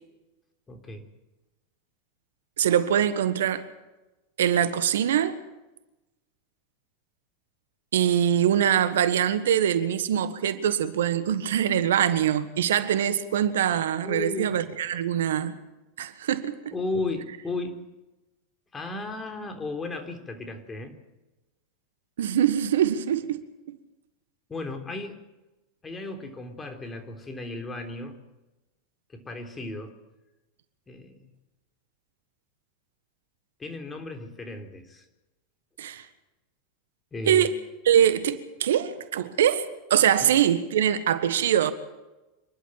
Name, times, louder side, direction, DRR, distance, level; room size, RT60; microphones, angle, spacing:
voice 1, 0.7-1.0 14.0-14.6 16.7-17.8 18.7-21.0 24.5-25.2 25.8-28.2 29.1-30.0 30.9-31.3 33.6-35.0 37.1-37.4 40.2-40.3, left 3 dB, 20° left, 5 dB, 3.5 m, -34 dB
voice 2, 2.6-3.7 4.4-5.4 7.9-15.6 16.0-16.6 22.2-23.8 35.8-36.0 37.2-37.5 37.8-41.7, right 10 dB, 75° right, 12 dB, 1.4 m, -23 dB
27.5 x 11.5 x 9.0 m, 1.0 s
hypercardioid pair, 95°, 0 cm